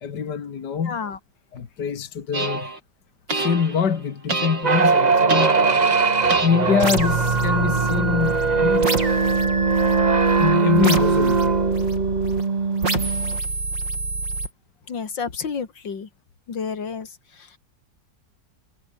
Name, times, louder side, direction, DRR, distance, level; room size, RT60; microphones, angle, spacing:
voice 1, 0.0-1.0 1.5-2.7 3.4-8.9 10.4-11.6, left 7 dB, 65° left, 2.4 m, -25 dB
voice 2, 0.8-1.2 14.9-16.1 16.5-17.6, left 6 dB, 80° left, 3.0 m, -31 dB
sound 1, 2.3-2.8 3.3-3.9 4.3-4.9 5.3-5.9 6.3-12.4 12.8-14.5, right 3 dB, 75° right, 6.6 m, -27 dB
sound 2, 4.6-13.4, right 4 dB, 25° right, 1.1 m, -20 dB
omnidirectional pair, 2.0 m